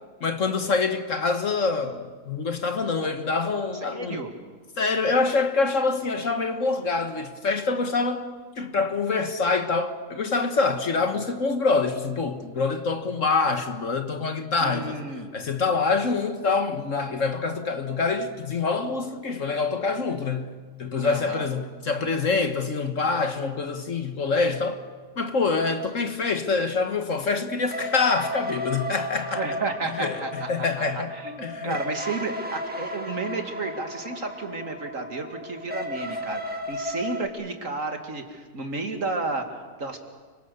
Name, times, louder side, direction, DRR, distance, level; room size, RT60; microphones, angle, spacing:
voice 1, 0.2-4.2 4.8-8.3 8.6-15.0 15.3-24.8 25.2-29.4 29.9-31.1 31.4-31.8, left 4 dB, 50° left, 1.7 m, -25 dB
voice 2, 3.8-4.3 14.6-15.3 21.0-21.5 29.4-30.5 30.8-40.0, right 3 dB, 50° right, 2.6 m, -32 dB
sound 1, 27.7-37.3, equal, 5° right, 1.9 m, -34 dB
29.5 x 24.5 x 6.9 m
omnidirectional pair, 1.7 m